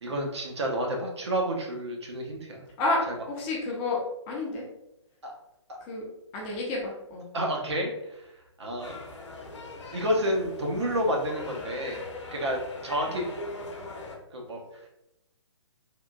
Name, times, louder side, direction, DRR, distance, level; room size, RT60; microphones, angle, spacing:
voice 1, 0.0-2.6 5.2-5.3 5.7-5.8 7.3-8.3 8.6-9.0 9.9-12.0 12.3-13.3 14.3-14.6, equal, 65° right, 0 dB, 0.9 m, -30 dB
voice 2, 2.8-4.0 4.3-4.7 5.8-6.1 6.3-7.3 13.1-13.3, left 2 dB, 20° left, -3 dB, 0.5 m, -30 dB
sound 1, 8.8-14.2, left 2 dB, 70° left, 0.8 m, -41 dB
3.5 x 2.4 x 2.3 m, 0.85 s
figure-of-eight pair, 135°, 16 cm